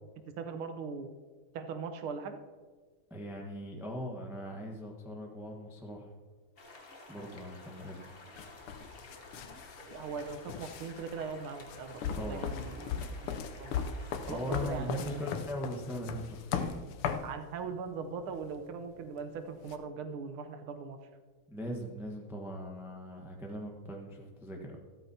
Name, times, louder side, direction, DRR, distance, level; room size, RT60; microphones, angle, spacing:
voice 1, 0.4-1.1 1.5-2.4 9.8-13.3 13.6-13.9 14.3-15.2 17.2-21.0, right 5 dB, 80° right, 8 dB, 1.7 m, -40 dB
voice 2, 3.1-6.1 7.1-8.0 12.2-12.5 14.3-16.9 21.5-24.8, equal, ahead, 0 dB, 0.7 m, -40 dB
sound 1, 6.6-15.3, left 3 dB, 35° left, 1.0 m, -52 dB
sound 2, 8.4-17.3 18.3-18.5 19.7-19.8, left 7 dB, 85° left, 1.6 m, -38 dB
13.5 x 13.0 x 2.8 m, 1.4 s
omnidirectional pair, 2.3 m